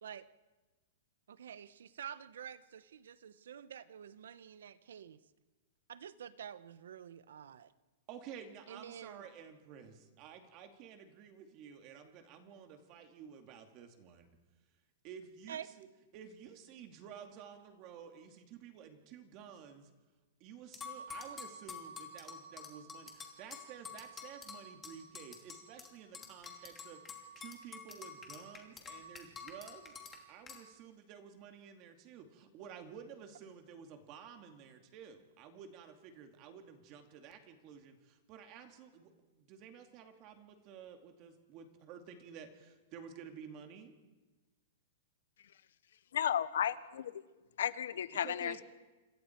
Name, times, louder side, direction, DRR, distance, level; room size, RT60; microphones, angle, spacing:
voice 1, 1.3-5.2 5.9-7.7 8.7-9.3 15.5-15.7, right 9 dB, 85° right, 15 dB, 1.1 m, -48 dB
voice 2, 8.1-14.3 15.0-15.9 16.1-19.9 20.4-39.1 39.4-43.9 48.1-48.6, right 7 dB, 30° right, 5 dB, 2.5 m, -52 dB
sound 1, 20.7-25.9 26.1-30.1 30.5-30.6, left 5 dB, 15° left, 2.8 m, -47 dB
voice 3, 46.1-47.1 47.6-48.6, left 9 dB, 75° left, 15 dB, 1.1 m, -34 dB
27.5 x 27.0 x 4.6 m, 1.2 s
supercardioid pair, 165°, 0 cm